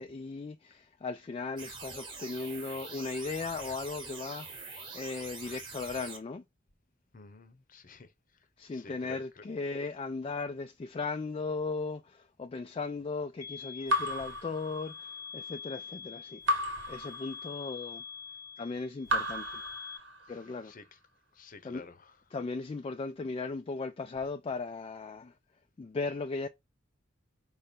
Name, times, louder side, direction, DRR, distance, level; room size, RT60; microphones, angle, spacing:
voice 1, 0.0-6.4 8.6-16.4 16.9-18.0 18.6-19.6 20.3-20.7 21.6-21.9 22.3-25.3 25.8-26.5, left 3 dB, 30° left, 0.3 m, -37 dB
sound 1, 1.6-6.2, right 4 dB, 25° right, 1.3 m, -44 dB
voice 2, 7.1-8.1 8.7-9.4 20.3-20.9 21.3-22.2, left 4 dB, 45° left, 0.7 m, -51 dB
sound 2, 13.4-20.0, left 6 dB, 15° left, 0.8 m, -45 dB
Raindrop / Drip, 13.9-15.3 16.5-17.8 19.0-20.5, left 1 dB, 70° right, 1.3 m, -34 dB
5.1 x 2.1 x 4.3 m
head